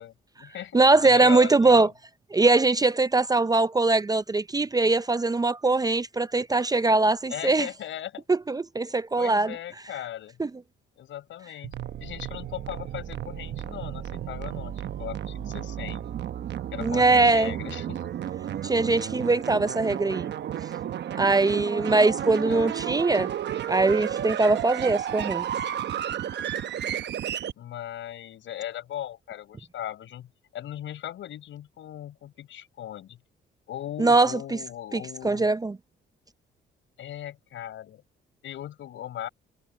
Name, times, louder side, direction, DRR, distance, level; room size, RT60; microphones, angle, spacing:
voice 1, 0.0-1.9 7.3-8.2 9.2-10.4 11.0-16.1 16.7-18.2 22.3-22.7 27.6-33.2 33.7-35.5 37.0-38.0 38.4-39.3, left 11 dB, 75° left, 6.9 m, -38 dB
voice 2, 0.7-1.9 2.3-7.7 8.3-9.5 10.4-10.5 16.8-17.5 18.6-20.3 21.1-23.3 23.7-25.5 34.0-34.3 34.9-35.7, right 3 dB, 20° right, 0.6 m, -22 dB
sound 1, 11.6-27.5, right 10 dB, 60° right, 1.0 m, -32 dB
cardioid pair, 90°, 20 cm